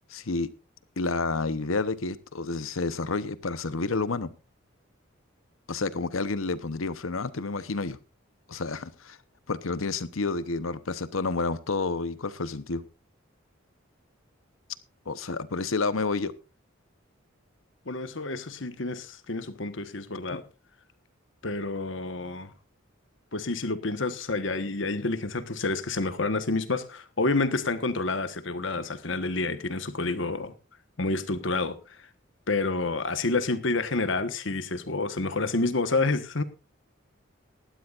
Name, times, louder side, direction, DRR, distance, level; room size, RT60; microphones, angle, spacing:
voice 1, 0.1-0.5 1.0-4.3 5.7-8.0 8.5-9.2 9.5-12.8 15.1-16.3 20.3-20.4, left 3 dB, 80° left, 1.0 m, -30 dB
voice 2, 17.8-20.4 21.4-22.5 23.3-30.5 31.0-32.1 32.5-36.4, left 3 dB, 65° left, 1.3 m, -29 dB
18.5 x 12.5 x 2.5 m
head